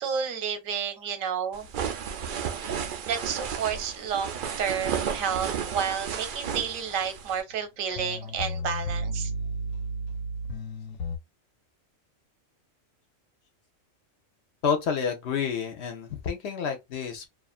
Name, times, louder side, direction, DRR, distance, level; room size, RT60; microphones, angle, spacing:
voice 1, 0.0-1.7 3.0-9.3, right 7 dB, 90° right, 1.1 m, -31 dB
sound 1, 1.5-7.4, right 7 dB, 65° right, 0.5 m, -33 dB
sound 2, 7.6-7.7 7.9-11.2, equal, 85° left, 1.0 m, -33 dB
voice 2, 14.6-17.3, left 6 dB, 65° left, 0.8 m, -29 dB
2.4 x 2.4 x 2.3 m
omnidirectional pair, 1.4 m